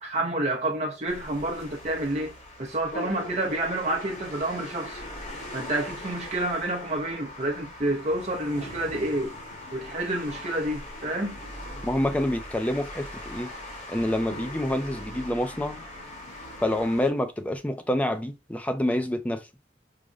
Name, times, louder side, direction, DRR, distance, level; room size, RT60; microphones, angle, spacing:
voice 1, 0.0-2.3 2.6-5.0 5.5-9.3 9.7-11.4, right 1 dB, 40° right, 0.6 m, -29 dB
sound 1, 1.1-17.1, left 1 dB, 40° left, 1.1 m, -41 dB
sound 2, 2.9-6.5 7.4-7.5 8.6-12.5 13.5-13.6 14.3-16.9 17.4-17.5, equal, 60° left, 1.4 m, -45 dB
voice 2, 11.8-13.5 13.9-15.9 16.6-19.5, left 1 dB, 10° left, 0.3 m, -27 dB
4.8 x 2.1 x 2.4 m
head